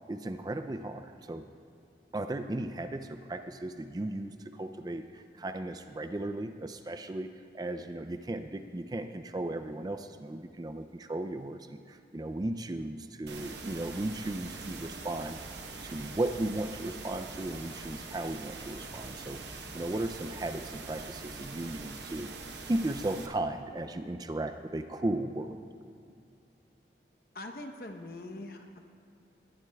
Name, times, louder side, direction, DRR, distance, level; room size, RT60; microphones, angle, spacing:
voice 1, 0.1-1.4 2.1-15.4 15.8-22.3 22.7-25.6, right 1 dB, 20° right, 8 dB, 0.4 m, -36 dB
sound 1, 13.3-23.3, right 3 dB, 80° right, 1.0 m, -43 dB
voice 2, 27.3-28.9, left 2 dB, 55° left, 4 dB, 0.9 m, -43 dB
20.5 x 12.5 x 2.3 m, 2.6 s
head